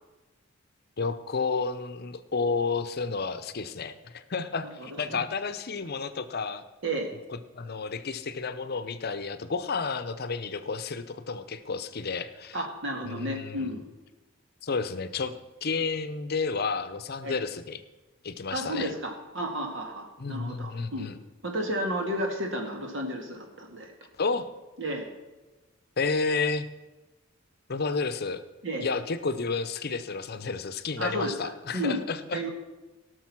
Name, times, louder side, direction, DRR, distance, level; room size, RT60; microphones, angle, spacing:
voice 1, 1.0-6.6 7.6-12.6 13.1-13.8 14.6-15.3 15.6-17.8 18.2-18.9 20.2-21.2 24.2-24.5 26.0-26.7 27.7-28.4 28.8-32.4, left 4 dB, 50° left, 12 dB, 0.7 m, -31 dB
voice 2, 4.8-5.2 6.8-7.1 12.5-13.9 17.2-17.4 18.5-21.1 21.4-23.9 24.8-25.1 28.6-28.9 31.0-32.0 32.3-32.5, right 1 dB, 65° right, 2 dB, 2.0 m, -32 dB
17.5 x 6.4 x 6.0 m, 1.1 s
head